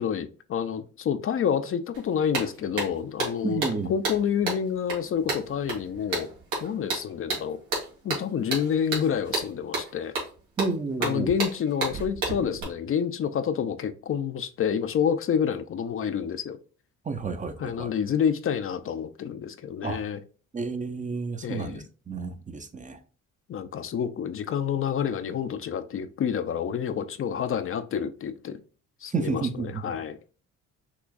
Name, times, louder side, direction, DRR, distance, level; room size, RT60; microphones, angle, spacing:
voice 1, 0.0-6.3 6.6-7.6 8.0-10.1 11.0-16.6 17.6-20.2 21.4-21.9 23.5-28.6 29.0-30.2, left 8 dB, 45° left, 0.5 m, -28 dB
sound 1, 1.9-2.0 2.3-12.6, right 3 dB, 90° right, 2.1 m, -32 dB
voice 2, 3.4-3.9 10.6-11.3 17.1-17.9 19.8-20.0 20.5-23.0 29.1-29.9, right 4 dB, 25° right, 0.6 m, -31 dB
5.9 x 3.0 x 2.4 m
cardioid pair, 90°, 30 cm